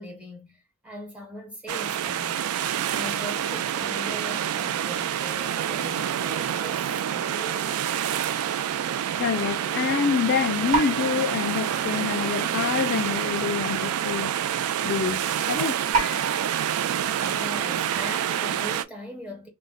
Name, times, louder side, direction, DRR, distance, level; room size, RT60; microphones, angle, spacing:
voice 1, 0.0-2.4 2.9-7.8 16.9-19.5, equal, 5° right, 1.1 m, -40 dB
sound 1, 1.7-18.8, right 10 dB, 85° right, 0.3 m, -27 dB
sound 2, 7.5-8.0 8.6-8.7 10.7-12.4 12.8-13.0 13.2-13.4 14.0-14.1 15.9-17.6, right 3 dB, 40° right, 1.1 m, -32 dB
voice 2, 9.2-14.3 14.8-15.8, left 6 dB, 55° left, 0.3 m, -26 dB
2.5 x 2.1 x 3.9 m
head